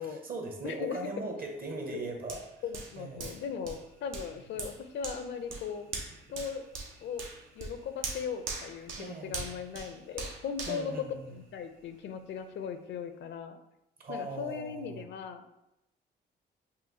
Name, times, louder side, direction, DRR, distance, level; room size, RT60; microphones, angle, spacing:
voice 1, 0.0-2.4 3.0-3.4 8.9-9.7 10.7-11.3 14.0-15.0, right 2 dB, 50° right, 2 dB, 1.0 m, -39 dB
voice 2, 0.6-1.0 1.9-2.0 2.6-5.9 6.3-6.6 7.0-7.3 7.6-11.0 11.3-13.6 14.1-15.4, left 7 dB, 65° left, 8 dB, 0.5 m, -38 dB
Hands, 2.3-11.8 12.3-12.4, right 4 dB, 80° right, 0.8 m, -42 dB
5.6 x 2.5 x 2.7 m, 0.87 s
cardioid pair, 90°, 20 cm